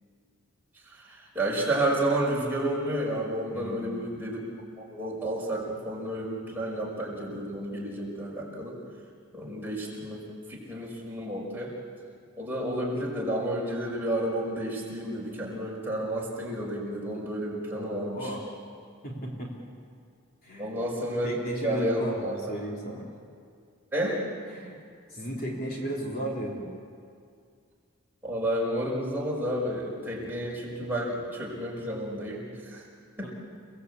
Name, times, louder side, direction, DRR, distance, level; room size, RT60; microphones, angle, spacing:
voice 1, 1.0-4.4 4.8-8.8 9.3-10.2 10.5-11.7 12.4-18.4 20.6-22.5 23.9-24.2 28.2-32.8 33.2-33.3, right 1 dB, 10° right, -4 dB, 5.5 m, -31 dB
voice 2, 3.5-4.0 17.7-18.4 19.0-19.5 20.4-20.7 21.2-23.1 24.5-24.8 25.1-26.6 33.2-33.3, equal, 45° left, -2 dB, 3.7 m, -35 dB
29.5 x 18.5 x 8.4 m, 2.2 s
head